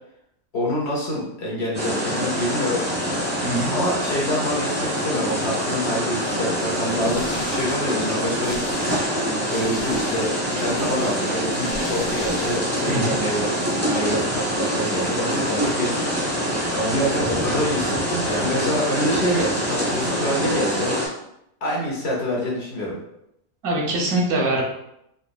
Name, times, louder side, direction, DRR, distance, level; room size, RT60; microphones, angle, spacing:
voice 1, 0.5-2.8 3.7-8.8 9.5-10.3 10.6-20.9 21.6-22.9, equal, 50° left, -4 dB, 1.0 m, -26 dB
sound 1, 1.7-21.1, equal, 15° right, 0.7 m, -25 dB
voice 2, 3.4-3.7 12.9-13.2 23.6-24.6, right 1 dB, 85° right, -1 dB, 1.3 m, -23 dB
sound 2, 6.6-12.7, left 3 dB, 75° left, 1.0 m, -40 dB
3.9 x 2.8 x 2.3 m, 0.79 s
omnidirectional pair, 1.5 m